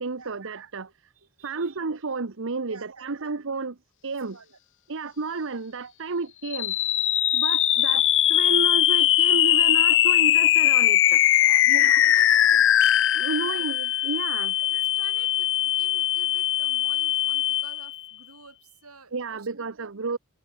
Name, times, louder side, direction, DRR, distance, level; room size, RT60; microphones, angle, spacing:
voice 1, 0.0-0.9 1.4-3.7 4.0-4.4 4.9-6.8 7.3-8.0 8.3-11.2 11.7-12.5 13.1-14.8 19.1-20.2, right 4 dB, 65° right, 1.0 m, -32 dB
voice 2, 0.8-1.8 2.7-3.3 4.3-4.6 6.0-6.2 11.4-12.7 13.1-13.7 14.3-20.1, right 4 dB, 90° right, 7.7 m, -51 dB
sound 1, 6.4-18.0, left 12 dB, 60° left, 1.2 m, -21 dB
head